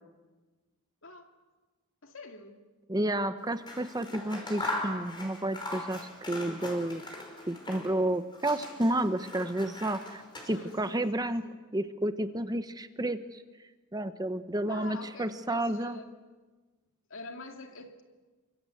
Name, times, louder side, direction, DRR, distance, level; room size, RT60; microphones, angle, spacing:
voice 1, 1.0-1.3 2.0-2.6 10.5-11.6 14.7-16.1 17.1-18.0, left 3 dB, 65° left, 2.6 m, -46 dB
voice 2, 2.9-11.4 11.7-13.4 13.9-16.0, right 1 dB, 20° right, 0.9 m, -31 dB
Scissors, 3.5-8.0 8.3-10.9, left 2 dB, 20° left, 5.2 m, -40 dB
28.5 x 24.5 x 7.9 m
head